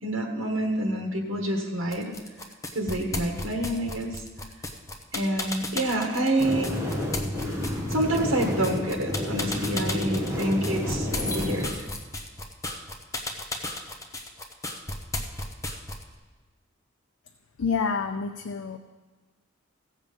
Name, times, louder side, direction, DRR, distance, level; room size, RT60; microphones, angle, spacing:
voice 1, 0.0-2.2 2.7-4.2 5.1-6.7 7.9-11.9, right 1 dB, 75° right, 2 dB, 1.3 m, -27 dB
sound 1, 1.9-16.1, left 2 dB, 15° left, 0.8 m, -34 dB
sound 2, 6.4-11.7, left 1 dB, 15° right, 1.6 m, -30 dB
voice 2, 17.6-18.8, left 5 dB, 80° left, 6 dB, 0.6 m, -28 dB
16.0 x 7.4 x 5.2 m, 1.3 s
head